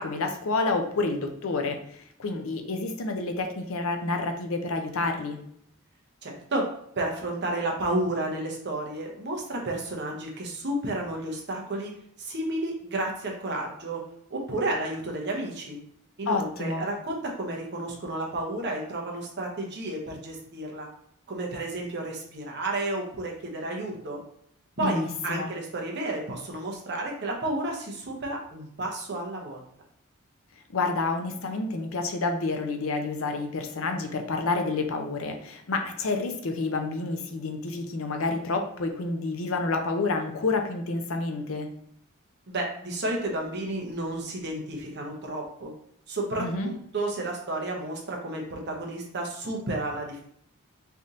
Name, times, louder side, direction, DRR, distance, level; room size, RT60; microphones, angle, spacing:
voice 1, 0.0-5.4 16.3-16.9 24.8-25.5 30.7-41.7 46.4-46.7, left 3 dB, 70° left, 5 dB, 0.6 m, -29 dB
voice 2, 6.2-6.7 7.0-11.9 12.2-14.0 14.3-15.8 16.2-20.9 21.3-24.2 24.8-29.6 42.5-45.7 46.1-50.3, right 2 dB, 55° right, 0 dB, 0.9 m, -31 dB
3.4 x 2.8 x 3.7 m, 0.68 s
head